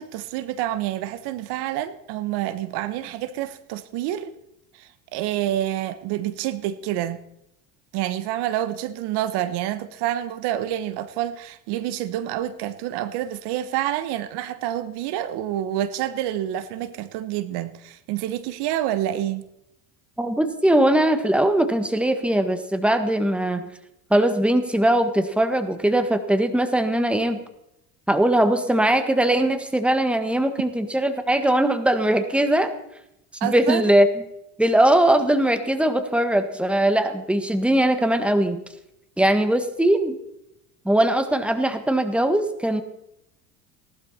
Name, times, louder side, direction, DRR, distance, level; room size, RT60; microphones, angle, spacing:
voice 1, 0.0-4.3 4.8-7.2 7.9-19.4 33.4-33.8, right 12 dB, 70° right, 1.1 m, -28 dB
voice 2, 20.2-23.7 24.1-27.4 28.1-32.7 33.4-34.1 34.6-38.6 39.2-40.2 40.8-42.8, right 1 dB, 5° right, 1.6 m, -20 dB
18.0 x 12.0 x 4.2 m
supercardioid pair, 90°, 42 cm